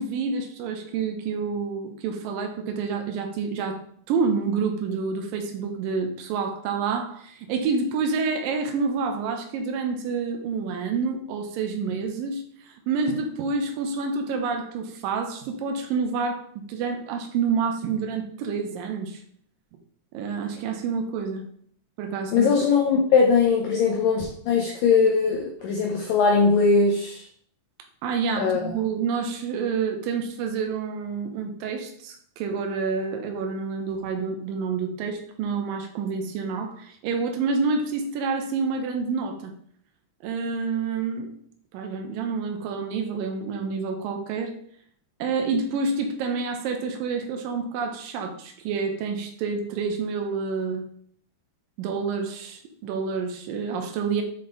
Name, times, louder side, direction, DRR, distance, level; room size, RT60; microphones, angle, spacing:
voice 1, 0.0-3.8 4.1-12.4 12.9-19.2 20.1-21.5 22.0-22.6 28.0-39.5 40.2-41.3 41.7-44.5 45.2-50.8 51.8-54.2, right 5 dB, 75° right, 4 dB, 2.1 m, -28 dB
voice 2, 22.3-27.3 28.4-28.6, left 5 dB, 85° left, 1 dB, 1.9 m, -20 dB
7.1 x 3.6 x 3.8 m, 0.62 s
omnidirectional pair, 4.8 m